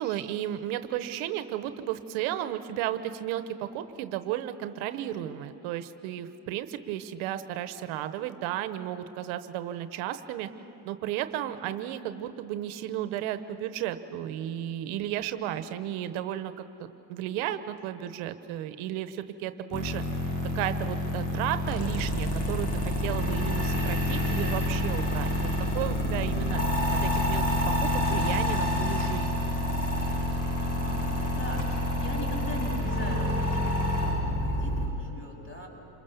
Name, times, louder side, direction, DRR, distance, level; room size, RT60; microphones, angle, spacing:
voice 1, 0.0-10.5 10.8-20.0 20.5-26.6 27.0-29.4, right 12 dB, 85° right, 10 dB, 1.0 m, -34 dB
sound 1, 19.7-34.9, left 1 dB, 40° left, 7.2 m, -28 dB
voice 2, 30.6-35.7, left 1 dB, 25° left, 0 dB, 7.3 m, -41 dB
27.5 x 22.0 x 6.9 m, 3.0 s
supercardioid pair, 80°, 47 cm